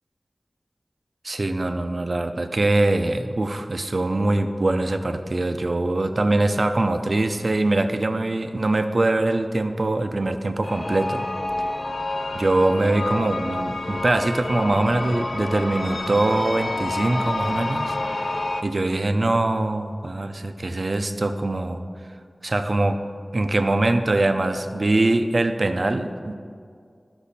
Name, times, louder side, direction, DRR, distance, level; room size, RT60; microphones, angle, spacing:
voice 1, 1.2-11.2 12.3-21.8 22.4-23.0 23.3-26.3, right 2 dB, 55° right, 8 dB, 0.5 m, -23 dB
sound 1, 10.6-18.6, left 2 dB, 50° left, 0.5 m, -29 dB
11.5 x 6.1 x 4.2 m, 2.2 s
wide cardioid pair, 70°, 0 cm